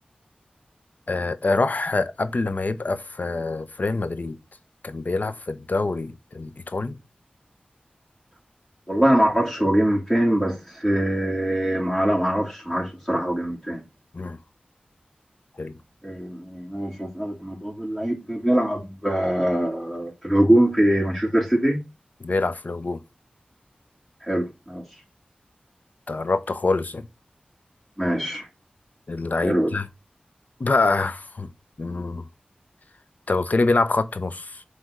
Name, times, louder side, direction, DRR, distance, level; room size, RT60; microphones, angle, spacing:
voice 1, 1.1-4.4 4.8-7.0 14.1-14.4 15.6-15.8 22.2-23.0 26.1-27.1 29.1-29.9 30.6-31.5 31.8-32.3 33.3-34.6, left 3 dB, 60° left, 0.9 m, -25 dB
voice 2, 8.9-13.8 16.0-21.8 24.2-25.0 28.0-28.5 29.4-29.8, right 1 dB, 5° left, 3.0 m, -23 dB
8.1 x 3.5 x 6.5 m
wide cardioid pair, 60°, 3 cm